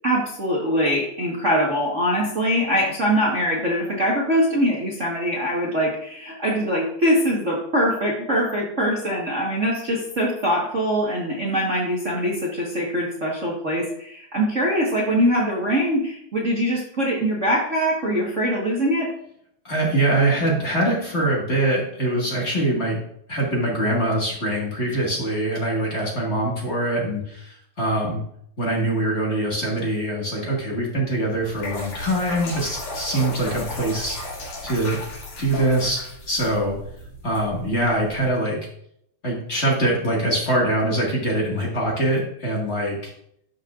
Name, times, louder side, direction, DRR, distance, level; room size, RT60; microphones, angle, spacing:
voice 1, 0.0-19.1, equal, 50° right, -4 dB, 0.9 m, -23 dB
voice 2, 19.6-23.0 23.3-28.2 28.6-34.2 34.6-35.0 35.4-36.8 37.2-38.6 39.2-43.1, right 1 dB, 30° left, -3 dB, 1.4 m, -23 dB
sound 1, 31.3-38.3, left 2 dB, 75° left, 4.0 m, -35 dB
12.5 x 6.4 x 2.5 m, 0.71 s
omnidirectional pair, 3.6 m